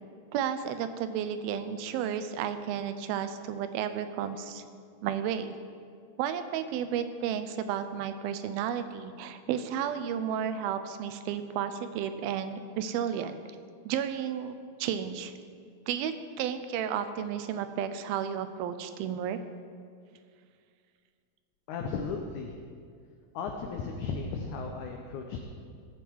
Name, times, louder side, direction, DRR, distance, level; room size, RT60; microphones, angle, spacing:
voice 1, 0.3-4.6 5.0-5.5 6.2-13.4 13.9-15.3 15.9-19.4, right 9 dB, 80° right, 10 dB, 2.5 m, -32 dB
voice 2, 21.7-22.5 23.3-25.4, left 5 dB, 75° left, 3 dB, 1.9 m, -35 dB
20.5 x 7.8 x 4.6 m, 2.2 s
omnidirectional pair, 4.3 m